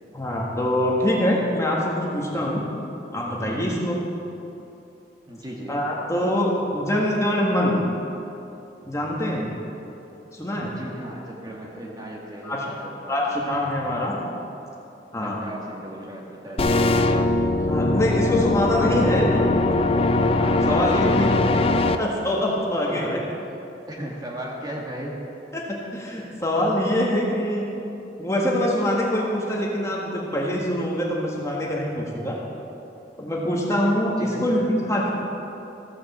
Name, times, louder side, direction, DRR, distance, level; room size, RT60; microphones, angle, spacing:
voice 1, 0.1-2.6 3.1-4.0 5.7-7.8 8.8-9.5 10.3-10.7 12.4-12.6 13.1-14.2 15.1-15.4 17.6-19.4 20.7-21.3 22.0-23.2 25.5-27.7 28.2-32.4 33.2-35.1, left 1 dB, 15° left, -3 dB, 1.7 m, -24 dB
voice 2, 5.3-5.8 10.6-13.7 15.2-19.1 20.4-21.7 22.9-23.6 23.9-25.2 34.2-34.6, right 1 dB, 20° right, -2 dB, 1.5 m, -37 dB
sound 1, 16.6-22.0, left 2 dB, 30° left, 0.5 m, -21 dB
15.0 x 7.4 x 7.3 m, 2.8 s
head